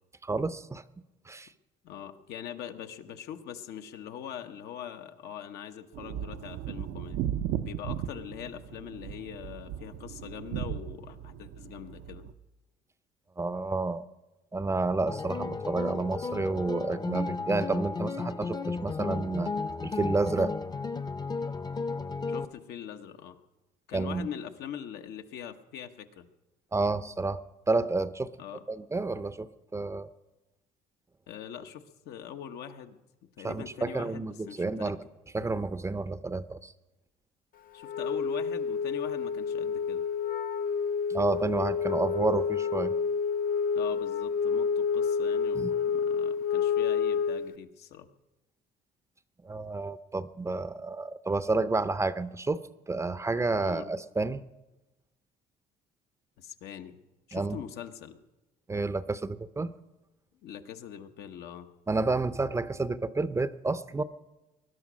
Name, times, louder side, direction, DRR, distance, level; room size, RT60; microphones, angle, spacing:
voice 1, 0.2-0.8 1.3-1.5 13.4-14.0 14.5-19.5 19.8-20.6 23.9-24.3 26.7-28.3 28.7-30.1 33.4-35.0 35.3-36.7 41.1-42.9 45.5-45.7 49.4-54.4 57.3-57.6 58.7-59.7 61.9-64.0, right 3 dB, 15° right, 14 dB, 0.6 m, -30 dB
voice 2, 1.8-7.2 7.6-12.3 22.3-23.3 23.9-26.3 28.4-28.6 31.3-33.0 33.4-34.9 37.7-40.0 43.7-48.1 53.6-53.9 56.4-57.0 57.3-58.2 60.4-61.7, left 9 dB, 75° left, 6 dB, 1.1 m, -42 dB
sound 1, 5.9-12.3, right 10 dB, 80° right, 0.7 m, -36 dB
sound 2, 15.1-22.4, left 4 dB, 25° left, 0.7 m, -34 dB
Wind instrument woodwind instrument, 37.8-47.5, left 6 dB, 55° left, 0.8 m, -29 dB
20.5 x 11.0 x 6.2 m, 1.0 s
cardioid pair, 110°, 17 cm